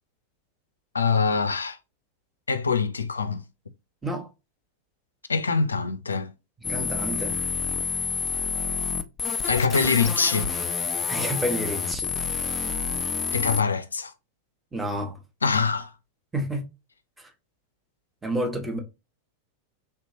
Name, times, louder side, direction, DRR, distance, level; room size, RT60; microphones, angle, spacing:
voice 1, 0.9-1.8 2.5-3.4 5.3-6.3 9.4-10.5 13.3-14.1 15.4-15.9, left 5 dB, 75° left, 0.4 m, -24 dB
sound 1, 6.6-13.6, left 5 dB, 20° left, 0.5 m, -28 dB
voice 2, 6.7-7.4 11.1-12.1 14.7-15.2 16.3-16.6 18.2-18.8, equal, 10° right, 1.0 m, -29 dB
3.3 x 2.8 x 2.8 m
figure-of-eight pair, 90°, 0 cm